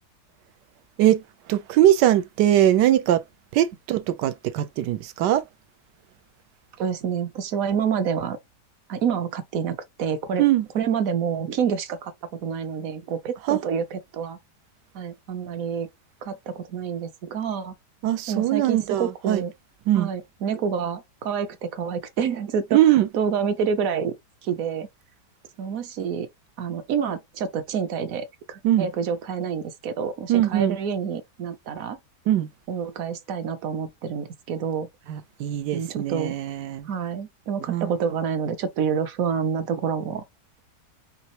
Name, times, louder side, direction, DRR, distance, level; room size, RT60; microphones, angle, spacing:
voice 1, 1.5-3.2 3.5-5.4 10.4-10.7 13.5-13.6 18.0-19.4 19.9-20.1 22.7-23.1 28.6-28.9 30.3-30.8 32.3-32.5 35.1-36.9 37.7-37.9, right 12 dB, 85° right, 1.3 m, -21 dB
voice 2, 6.8-8.4 8.9-10.4 10.7-14.4 14.9-15.9 16.2-17.7 18.3-19.5 20.0-22.8 23.1-24.1 24.4-24.9 25.6-26.3 26.6-32.0 32.7-34.9 35.7-36.3 36.9-40.2, right 7 dB, 65° right, 1.0 m, -28 dB
5.4 x 3.0 x 2.9 m
omnidirectional pair, 1.8 m